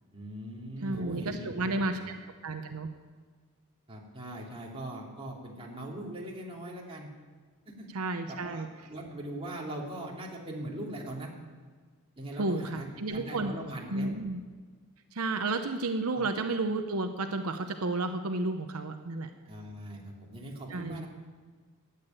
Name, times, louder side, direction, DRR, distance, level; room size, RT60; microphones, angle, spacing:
voice 1, 0.1-2.1 3.9-7.1 7.6-7.9 8.3-11.3 12.2-14.1 16.2-16.3 19.4-21.1, right 1 dB, 25° right, -3 dB, 3.0 m, -41 dB
voice 2, 0.8-2.0 2.4-2.9 7.9-8.7 12.4-13.5 13.9-14.4 15.1-19.3 20.7-21.0, right 2 dB, 85° right, 7 dB, 0.8 m, -32 dB
13.0 x 8.4 x 9.1 m, 1.5 s
head